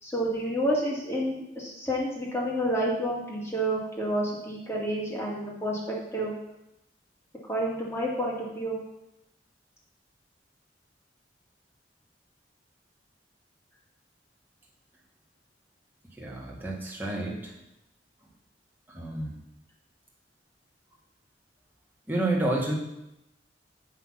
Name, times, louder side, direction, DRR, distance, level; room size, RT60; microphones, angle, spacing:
voice 1, 0.0-6.3 7.5-8.8, right 1 dB, 15° left, -4 dB, 2.3 m, -29 dB
voice 2, 16.2-17.5 18.9-19.3 22.1-22.7, right 2 dB, 10° right, -3 dB, 1.7 m, -29 dB
8.3 x 5.6 x 5.8 m, 0.87 s
head